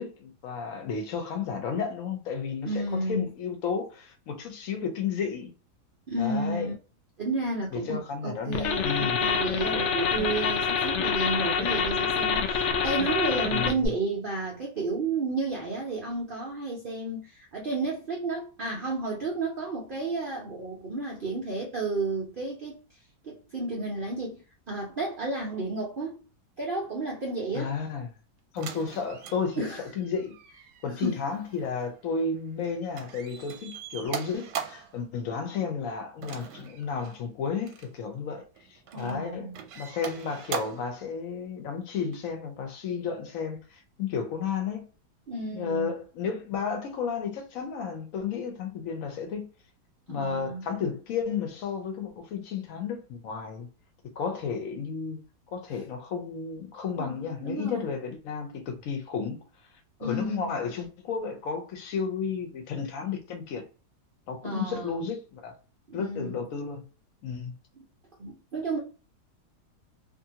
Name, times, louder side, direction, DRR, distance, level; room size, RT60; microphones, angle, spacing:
voice 1, 0.0-5.5 6.2-6.7 7.7-9.2 13.5-13.9 27.5-28.1 28.5-30.4 30.8-38.4 38.7-44.8 45.5-49.5 50.1-53.7 54.2-55.2 55.5-59.4 60.0-63.6 64.3-65.5 65.9-66.9 67.2-67.5, left 6 dB, 65° left, 0.9 m, -32 dB
voice 2, 2.6-3.3 6.1-6.7 7.2-22.8 23.2-26.2 26.6-27.8 29.6-29.8 31.0-31.2 38.9-39.6 45.3-45.9 50.1-50.8 57.0-57.9 60.0-60.5 64.4-65.0 65.9-66.4 68.2-68.8, right 2 dB, 70° right, 0.5 m, -32 dB
sound 1, 8.5-13.9, left 6 dB, 90° left, 0.6 m, -26 dB
sound 2, 28.6-32.7 32.9-35.0 36.2-37.2 37.6-37.9 38.6-39.2 39.5-40.9 42.1-42.2, right 8 dB, 85° right, 1.2 m, -40 dB
2.6 x 2.6 x 2.7 m
omnidirectional pair, 1.8 m